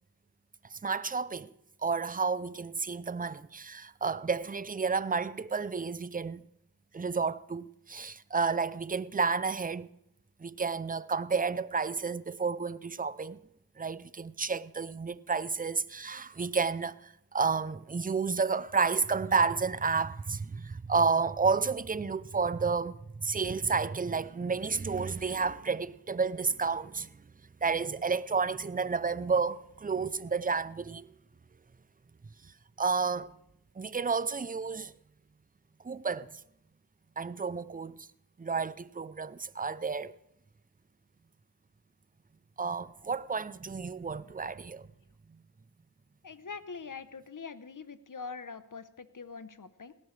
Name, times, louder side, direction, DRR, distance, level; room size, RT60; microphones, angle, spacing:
voice 1, 0.7-1.5 1.8-6.5 6.9-9.9 10.4-13.4 13.8-27.1 27.6-31.2 32.4-32.5 32.8-33.3 33.8-34.9 35.8-36.4 37.2-38.1 38.4-40.1 42.6-44.9, right 5 dB, 25° right, 0.4 m, -31 dB
voice 2, 46.2-49.9, left 5 dB, 55° left, 0.9 m, -43 dB
18.0 x 15.0 x 3.3 m
wide cardioid pair, 40°, 38 cm